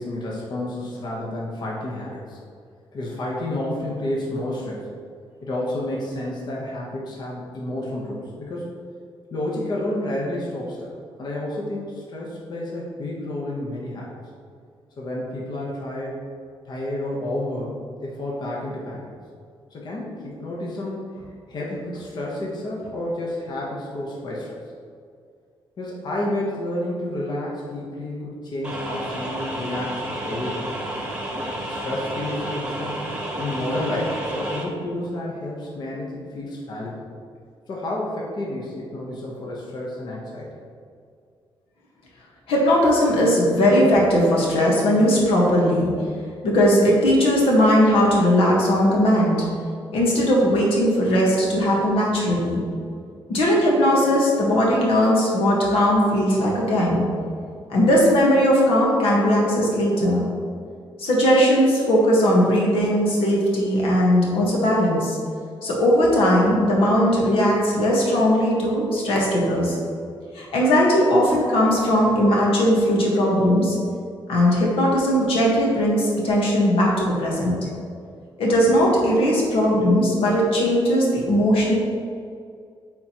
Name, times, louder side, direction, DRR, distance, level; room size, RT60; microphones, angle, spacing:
voice 1, 0.0-2.4 2.9-4.9 5.4-8.7 9.3-10.9 11.2-14.1 15.0-16.2 16.6-19.2 19.7-21.0 21.5-24.6 25.8-30.8 31.3-37.0 37.7-40.5, left 1 dB, 50° left, -4 dB, 1.1 m, -30 dB
sound 1, 28.6-34.6, right 1 dB, 15° right, 1.0 m, -31 dB
voice 2, 42.5-45.9 46.4-49.5 49.9-52.6 53.3-57.1 57.7-60.3 61.0-65.2 65.6-69.8 70.3-73.8 74.3-77.5 78.4-81.8, equal, 90° left, -4 dB, 1.5 m, -19 dB
8.7 x 3.8 x 3.0 m, 2.2 s
cardioid pair, 130°, 9 cm